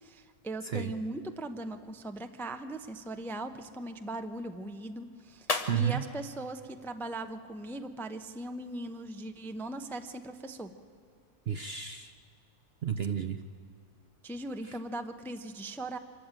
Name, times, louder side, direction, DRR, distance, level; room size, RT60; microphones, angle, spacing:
voice 1, 0.0-5.5 5.7-10.7 14.2-16.0, right 2 dB, ahead, 8 dB, 0.5 m, -39 dB
sound 1, 5.4-7.8, left 3 dB, 25° left, 1.0 m, -42 dB
voice 2, 5.7-6.0 11.5-12.1 12.8-13.4 14.6-14.8, right 8 dB, 55° right, 9 dB, 0.7 m, -31 dB
25.0 x 14.0 x 8.9 m, 2.4 s
omnidirectional pair, 1.6 m